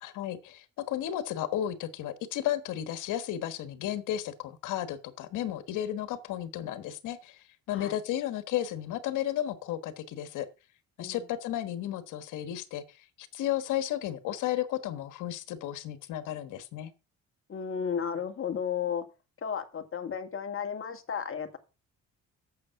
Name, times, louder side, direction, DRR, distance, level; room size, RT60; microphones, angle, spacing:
voice 1, 0.0-10.5 11.0-16.9, left 12 dB, 90° left, 1.4 m, -33 dB
voice 2, 17.5-19.0 19.4-21.6, left 7 dB, 45° left, 2.1 m, -33 dB
8.6 x 7.2 x 5.7 m
cardioid pair, 90°, 30 cm